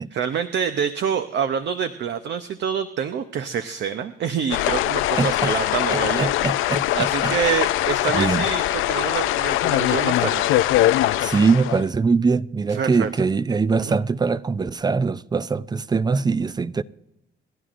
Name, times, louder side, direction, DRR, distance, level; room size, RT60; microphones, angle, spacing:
voice 1, 0.0-6.3 6.9-10.5 12.7-13.2 13.9-14.0, right 7 dB, 65° right, 0.7 m, -26 dB
sound 1, 4.5-11.8, left 14 dB, 85° left, 0.4 m, -22 dB
voice 2, 5.2-5.5 5.9-7.3 8.1-8.5 11.2-16.8, right 4 dB, 20° right, 0.4 m, -22 dB
28.0 x 11.0 x 2.5 m
cardioid pair, 90°, 20 cm